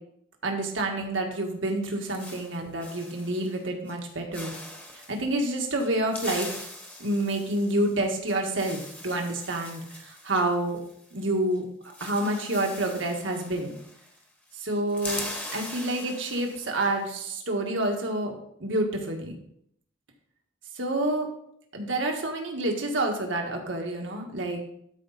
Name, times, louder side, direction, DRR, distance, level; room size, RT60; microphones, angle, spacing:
voice 1, 0.4-4.5 5.1-6.6 7.0-10.8 11.1-11.7 12.0-13.7 14.5-15.2 15.5-18.3 18.6-19.3 20.7-21.3 21.7-24.6, right 1 dB, 80° right, 2 dB, 1.7 m, -28 dB
sound 1, 1.6-3.6 3.9-4.1 4.3-5.2 5.8-11.3 11.5-11.6 11.8-14.2 14.5-16.9, left 1 dB, 10° left, 1.2 m, -41 dB
12.5 x 4.7 x 4.1 m, 0.70 s
head